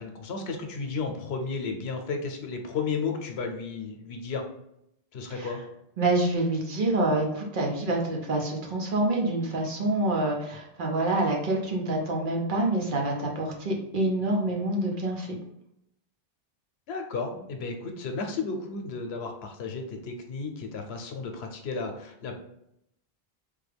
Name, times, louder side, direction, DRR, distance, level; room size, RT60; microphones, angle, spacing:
voice 1, 0.0-4.4 5.1-5.6 16.9-22.3, left 4 dB, 90° left, 4 dB, 0.9 m, -33 dB
voice 2, 6.0-15.4, right 2 dB, 55° right, -1 dB, 0.8 m, -27 dB
3.4 x 2.2 x 3.3 m, 0.78 s
omnidirectional pair, 1.0 m